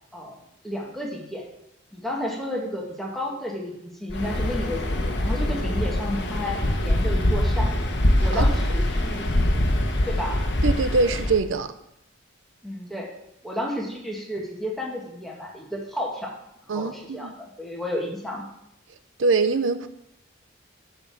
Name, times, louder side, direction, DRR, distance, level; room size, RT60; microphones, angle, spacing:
voice 1, 0.1-1.4 1.9-7.8 8.2-9.3 10.1-10.4 12.6-13.1 13.4-16.3 16.6-18.4, left 1 dB, ahead, -2 dB, 1.9 m, -32 dB
Waves surf, 4.1-11.4, left 1 dB, 60° left, 1.2 m, -23 dB
voice 2, 10.6-11.7 16.7-17.3 19.2-19.9, right 4 dB, 80° right, 10 dB, 0.6 m, -23 dB
8.6 x 5.8 x 7.5 m, 0.82 s
head